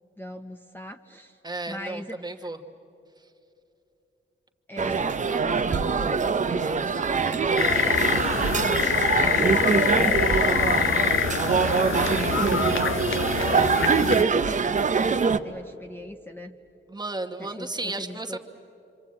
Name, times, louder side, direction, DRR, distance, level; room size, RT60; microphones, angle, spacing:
voice 1, 0.2-1.4 1.7-2.5 4.7-11.0 11.5-16.5 17.4-18.4, equal, 10° left, 4 dB, 0.7 m, -40 dB
voice 2, 1.4-2.6 16.9-18.4, right 2 dB, 20° right, 6 dB, 1.2 m, -33 dB
sound 1, 4.8-15.4, right 5 dB, 35° right, 0.6 m, -24 dB
sound 2, 7.6-14.2, left 8 dB, 80° left, 0.7 m, -25 dB
26.5 x 26.0 x 8.6 m, 2.8 s
wide cardioid pair, 160°, 21 cm